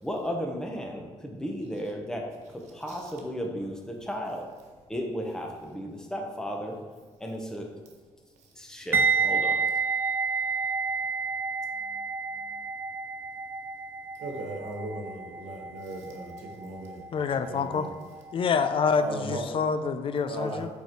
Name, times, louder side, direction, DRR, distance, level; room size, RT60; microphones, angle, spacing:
voice 1, 0.0-4.5 4.9-6.8 7.2-7.7 8.5-9.6, equal, 5° left, 1 dB, 0.9 m, -34 dB
sound 1, 8.9-17.9 18.1-18.4, right 5 dB, 20° right, 0.3 m, -30 dB
voice 2, 14.2-17.9 18.9-19.4 20.3-20.6, right 2 dB, 90° right, 2 dB, 1.2 m, -37 dB
voice 3, 17.1-17.9 18.3-20.7, left 5 dB, 50° left, 10 dB, 0.4 m, -27 dB
5.4 x 4.5 x 4.6 m, 1.4 s
cardioid pair, 95°, 12 cm